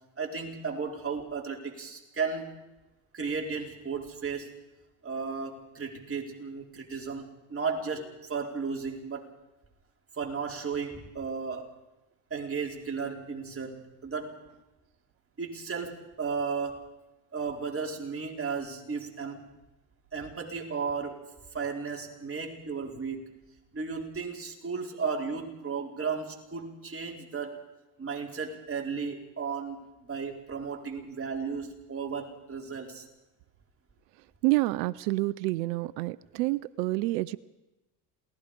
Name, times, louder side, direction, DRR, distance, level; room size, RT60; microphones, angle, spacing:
voice 1, 0.2-2.6 3.1-4.6 5.0-9.3 10.1-11.7 12.3-14.4 15.4-16.9 17.3-19.5 20.1-21.3 21.5-23.3 23.7-27.6 28.0-33.0, right 5 dB, 25° right, 1 dB, 4.9 m, -34 dB
voice 2, 34.4-37.4, right 20 dB, 90° right, 17 dB, 0.7 m, -28 dB
28.0 x 19.0 x 5.2 m, 1.0 s
supercardioid pair, 80°, 48 cm